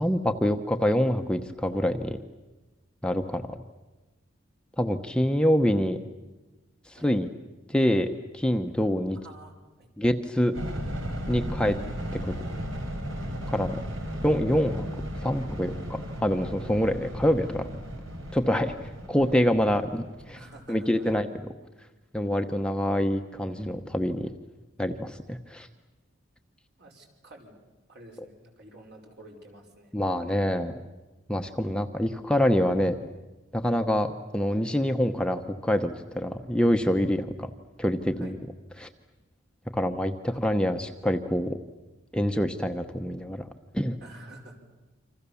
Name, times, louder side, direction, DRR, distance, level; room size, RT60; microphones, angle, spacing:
voice 1, 0.0-2.2 3.0-3.6 4.8-6.0 6.9-7.3 7.7-9.2 10.0-10.5 11.3-11.8 12.2-12.3 13.5-13.8 14.2-14.9 15.2-17.8 18.3-20.4 20.7-21.3 22.1-24.3 24.8-25.7 29.9-30.7 31.3-33.0 33.5-37.5 37.8-38.4 38.8-38.9 39.7-41.6 42.1-43.4 43.7-44.0, equal, 5° left, 5 dB, 0.9 m, -26 dB
voice 2, 9.2-9.5 9.8-9.9 20.3-21.2 26.8-29.9 38.2-38.3 44.0-44.6, right 2 dB, 55° right, 1 dB, 5.2 m, -49 dB
sound 1, 10.5-20.7, equal, 80° right, 4.3 m, -35 dB
28.0 x 26.0 x 7.1 m, 1.1 s
head